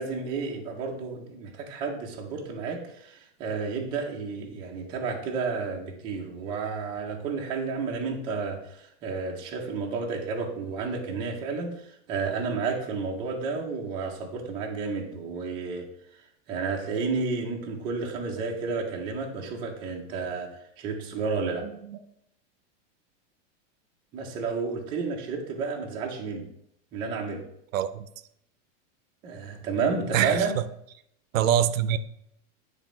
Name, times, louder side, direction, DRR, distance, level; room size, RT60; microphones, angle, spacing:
voice 1, 0.0-15.9 16.5-21.6 24.1-26.5 26.9-27.4 29.2-30.5, right 4 dB, 15° right, 0 dB, 0.4 m, -31 dB
voice 2, 21.6-22.0 27.7-28.1 30.1-30.6 31.3-32.0, right 10 dB, 90° right, 14 dB, 0.7 m, -25 dB
9.0 x 3.3 x 4.9 m, 0.74 s
supercardioid pair, 170°, 39 cm